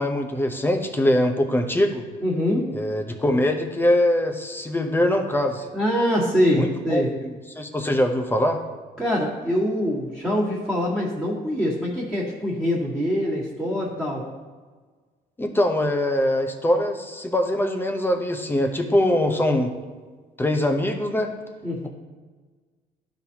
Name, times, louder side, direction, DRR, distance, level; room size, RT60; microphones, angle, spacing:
voice 1, 0.0-2.0 2.7-5.7 6.6-8.6 15.4-19.7 20.4-21.3, left 1 dB, 10° left, 4 dB, 0.8 m, -22 dB
voice 2, 2.2-2.7 5.7-7.1 9.0-14.3 21.6-21.9, equal, 5° right, -9 dB, 1.7 m, -24 dB
12.0 x 4.1 x 2.9 m, 1.4 s
cardioid pair, 110°, 17 cm